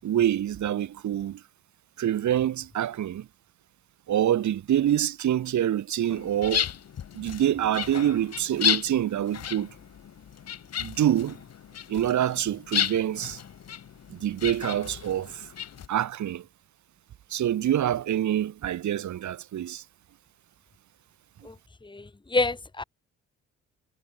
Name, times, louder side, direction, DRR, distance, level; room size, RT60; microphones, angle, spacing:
voice 1, 0.0-1.4 2.0-3.3 4.1-6.7 7.2-9.7 10.8-11.4 11.9-13.4 14.1-15.4 15.9-16.4 17.3-19.8, right 11 dB, 70° right, 5.8 m, -26 dB
sound 1, 6.1-15.9, left 9 dB, 60° left, 2.9 m, -33 dB
voice 2, 21.8-22.8, left 3 dB, 15° left, 2.5 m, -28 dB
cardioid pair, 90°, 30 cm